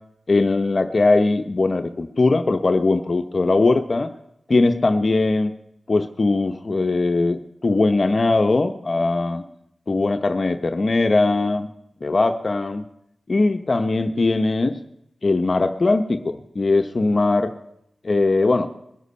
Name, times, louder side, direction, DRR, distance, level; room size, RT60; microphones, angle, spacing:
voice 1, 0.3-4.1 4.5-5.5 5.9-9.4 9.9-11.7 12.0-12.8 13.3-14.8 15.2-17.5 18.0-18.7, left 3 dB, 50° left, 8 dB, 0.9 m, -20 dB
21.0 x 8.1 x 5.6 m, 0.77 s
cardioid pair, 55°, 0 cm